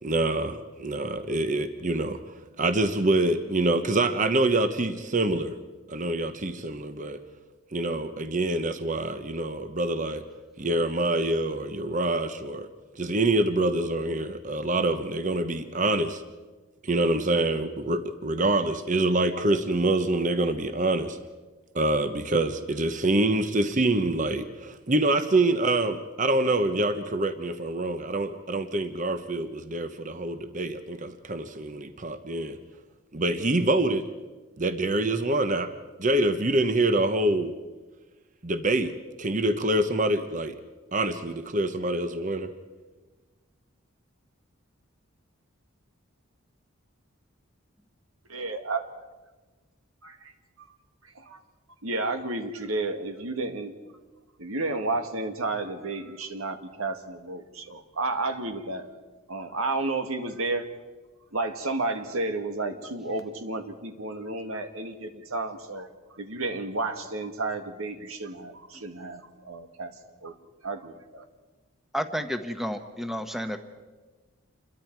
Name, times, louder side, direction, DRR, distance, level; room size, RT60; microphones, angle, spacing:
voice 1, 0.0-2.2 2.6-5.6 5.9-7.2 7.7-10.2 10.6-12.7 12.9-16.2 16.8-21.2 21.7-32.6 33.1-34.1 34.6-35.7 36.0-37.6 38.4-38.9 39.2-40.6 40.9-42.5, right 2 dB, 35° right, 9 dB, 1.0 m, -26 dB
voice 2, 48.3-48.8 50.0-50.3 50.6-50.7 51.2-51.4 51.8-53.7 54.4-58.9 59.3-60.7 61.3-65.9 66.2-69.9 70.2-70.4 70.6-71.3, right 2 dB, 90° right, 6 dB, 2.0 m, -32 dB
voice 3, 71.9-73.6, equal, ahead, 7 dB, 1.0 m, -31 dB
28.0 x 22.0 x 4.7 m, 1.3 s
head